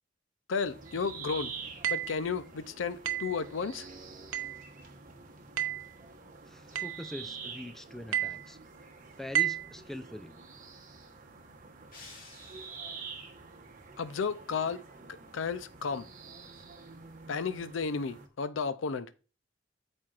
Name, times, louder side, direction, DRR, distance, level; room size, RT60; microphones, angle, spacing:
voice 1, 0.5-1.6 1.9-3.9 14.0-14.8 15.3-16.1 17.3-19.1, left 5 dB, 75° left, 0.5 m, -33 dB
sound 1, 0.6-18.3, right 4 dB, 45° right, 1.1 m, -47 dB
sound 2, 1.8-2.2 3.0-3.4 4.3-4.6 5.6-5.9 6.7-7.0 8.1-8.4 9.3-9.7, right 11 dB, 80° right, 0.7 m, -31 dB
voice 2, 6.5-8.6 9.2-10.3, left 1 dB, ahead, 0.5 m, -43 dB
sound 3, 11.9-13.2, left 3 dB, 50° left, 1.7 m, -52 dB
13.0 x 4.4 x 2.5 m
head